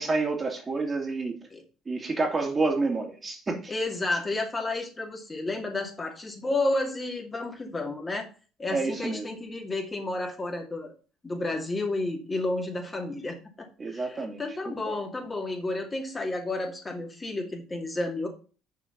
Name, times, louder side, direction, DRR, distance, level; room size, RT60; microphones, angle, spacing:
voice 1, 0.0-1.4 1.9-3.7 8.7-9.3 13.8-15.0, right 3 dB, 30° right, 2.6 m, -29 dB
voice 2, 3.7-8.3 8.6-10.9 11.2-18.3, left 2 dB, 25° left, 2.4 m, -31 dB
6.8 x 5.0 x 6.8 m
supercardioid pair, 85°, 0 cm